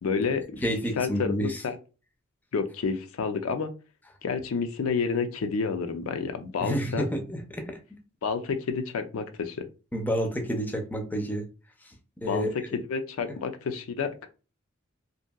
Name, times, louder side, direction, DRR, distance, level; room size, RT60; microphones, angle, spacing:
voice 1, 0.0-1.3 1.6-1.8 2.5-3.7 4.2-7.1 8.2-9.7 12.2-12.5 12.7-14.3, left 5 dB, 85° left, 0.4 m, -29 dB
voice 2, 0.6-1.6 6.6-7.8 9.9-11.5 11.8-11.9 12.2-12.5, equal, 10° left, 0.4 m, -29 dB
2.7 x 2.6 x 2.2 m
head